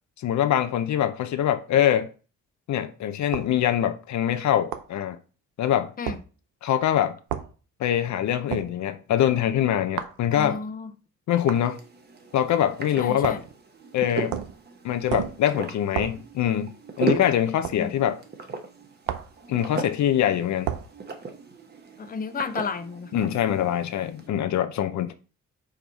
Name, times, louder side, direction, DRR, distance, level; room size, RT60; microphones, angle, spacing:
voice 1, 0.2-2.1 2.7-5.2 5.6-5.9 6.6-7.2 7.8-10.6 11.3-11.8 12.3-13.4 13.9-14.4 14.8-18.2 19.5-20.7 23.1-25.1, left 10 dB, 70° left, 0.7 m, -24 dB
sound 1, 3.3-3.5 4.7-4.9 6.1-6.2 7.3-7.5 8.5-8.7 10.0-10.2 11.5-11.7 13.2-13.5 14.3-14.6 15.1-15.4 15.9-16.2 17.6-17.8 19.1-19.4 20.6-20.9, right 11 dB, 85° right, 0.7 m, -31 dB
voice 2, 10.3-10.9 13.0-13.4 17.7-17.9 22.0-23.1, left 5 dB, 30° left, 0.7 m, -32 dB
sound 2, 11.4-24.3, right 4 dB, 35° right, 1.1 m, -37 dB
5.2 x 4.6 x 4.1 m
cardioid pair, 90°, 30 cm